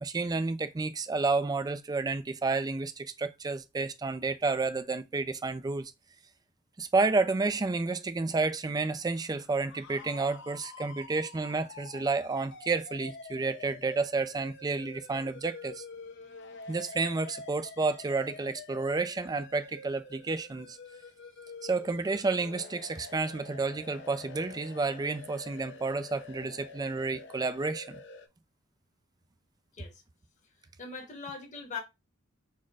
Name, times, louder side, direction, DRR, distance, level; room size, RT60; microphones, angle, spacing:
voice 1, 0.0-5.9 6.8-15.8 16.7-20.8 21.6-28.0, right 3 dB, 20° right, 0.3 m, -30 dB
sound 1, 9.2-28.3, left 4 dB, 60° left, 0.6 m, -48 dB
voice 2, 30.8-31.8, left 5 dB, 35° left, 1.0 m, -40 dB
4.3 x 2.1 x 4.6 m
head